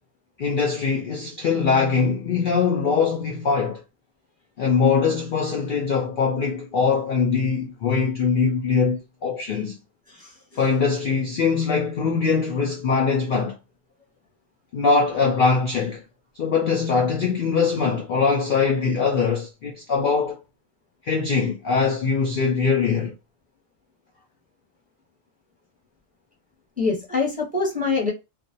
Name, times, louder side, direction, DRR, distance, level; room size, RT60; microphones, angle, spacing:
voice 1, 0.4-3.8 4.6-9.8 10.6-13.6 14.7-16.0 16.4-20.4 21.0-23.1, left 5 dB, 65° left, 0.5 m, -22 dB
voice 2, 26.8-28.1, left 4 dB, 10° right, 0.7 m, -24 dB
2.4 x 2.0 x 2.6 m
omnidirectional pair, 1.3 m